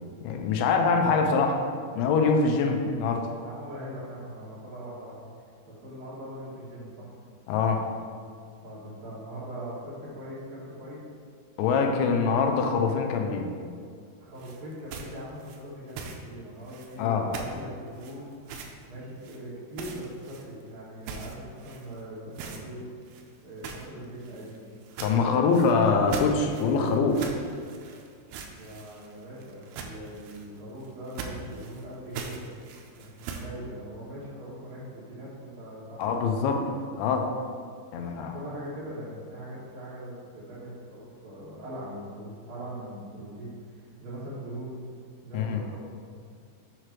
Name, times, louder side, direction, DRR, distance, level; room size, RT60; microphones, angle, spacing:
voice 1, 0.2-1.6 2.0-3.3 7.5-7.8 11.6-13.5 17.0-17.3 25.0-27.3 36.0-36.6 37.0-37.3 37.9-38.4 45.3-45.6, left 4 dB, 90° left, 4 dB, 3.0 m, -24 dB
voice 2, 2.5-2.8 3.4-5.2 5.6-7.1 8.6-11.0 14.2-18.3 18.9-22.8 23.4-24.7 25.0-25.7 28.6-32.4 33.0-36.6 37.9-44.8 45.2-45.8, equal, 60° right, -9 dB, 3.2 m, -41 dB
sound 1, 14.4-16.3 16.7-17.1 17.3-17.6 17.9-18.9 19.2-19.4 19.7-20.7 21.0-22.0 22.3-22.6 23.0-33.5, right 5 dB, 80° right, 2.2 m, -41 dB
7.8 x 3.2 x 6.0 m, 2.2 s
omnidirectional pair, 5.1 m